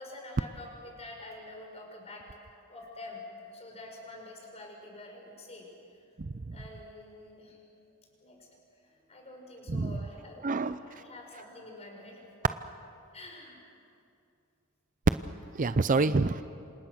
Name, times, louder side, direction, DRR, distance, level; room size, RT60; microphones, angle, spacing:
voice 1, 0.0-2.3 2.7-3.3 3.5-5.7 6.5-7.6 8.2-8.5 8.8-12.2 13.1-13.6, left 2 dB, 30° left, 1 dB, 5.5 m, -47 dB
voice 2, 6.2-6.5 9.7-10.0 10.4-10.8 15.5-16.4, right 3 dB, 35° right, 12 dB, 0.5 m, -27 dB
28.0 x 27.0 x 6.3 m, 2.5 s
head